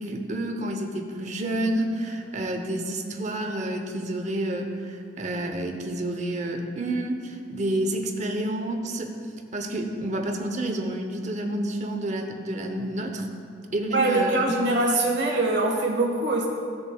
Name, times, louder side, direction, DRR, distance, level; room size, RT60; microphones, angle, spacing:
voice 1, 0.0-9.1 9.5-13.3 13.7-14.5, right 1 dB, 40° right, 4 dB, 0.7 m, -29 dB
voice 2, 13.9-16.5, right 2 dB, 65° right, -1 dB, 1.5 m, -23 dB
15.0 x 6.7 x 2.3 m, 2.3 s
head